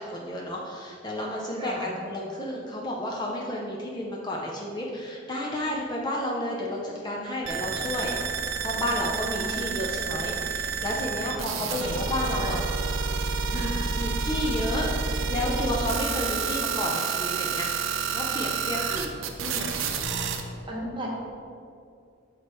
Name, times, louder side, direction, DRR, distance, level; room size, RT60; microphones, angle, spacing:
voice 1, 0.0-8.1 8.6-12.6 13.5-17.7 18.1-19.1 19.4-19.7 20.0-20.2, left 1 dB, 20° left, -3 dB, 0.6 m, -31 dB
voice 2, 1.6-1.9 9.4-9.5 11.5-11.7 12.4-12.5 13.5-13.9 18.7-19.0 20.7-21.1, right 1 dB, 25° right, -3 dB, 1.1 m, -37 dB
sound 1, 7.4-20.4, right 5 dB, 90° right, 0.5 m, -29 dB
8.0 x 3.1 x 4.4 m, 2.4 s
head